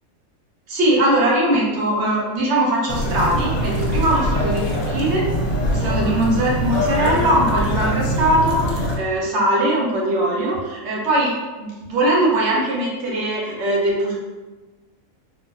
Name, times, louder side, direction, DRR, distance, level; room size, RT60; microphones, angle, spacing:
voice 1, 0.7-5.2 5.7-14.2, right 1 dB, 60° right, -4 dB, 1.0 m, -21 dB
sound 1, 2.9-9.0, equal, 65° left, 0.8 m, -22 dB
3.5 x 2.5 x 2.4 m, 1.2 s
omnidirectional pair, 1.4 m